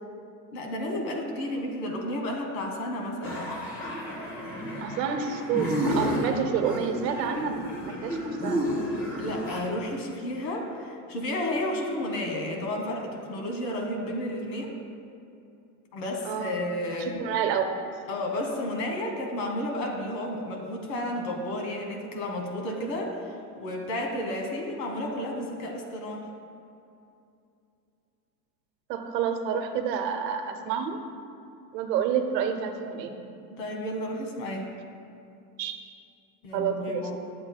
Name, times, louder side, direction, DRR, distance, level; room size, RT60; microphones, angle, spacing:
voice 1, 0.5-3.5 9.2-14.7 15.9-17.1 18.1-23.2 23.6-26.3 33.5-34.7 36.4-37.2, left 1 dB, 75° left, 1 dB, 1.6 m, -32 dB
sound 1, 3.2-9.6, equal, 25° left, 1.2 m, -31 dB
voice 2, 4.8-7.6 7.8-8.7 16.2-16.6 17.0-17.7 28.9-31.0 31.7-33.1 35.6-35.7 36.5-37.2, right 7 dB, 75° right, 6 dB, 0.9 m, -29 dB
10.5 x 7.6 x 2.2 m, 2.6 s
supercardioid pair, 115°, 50 cm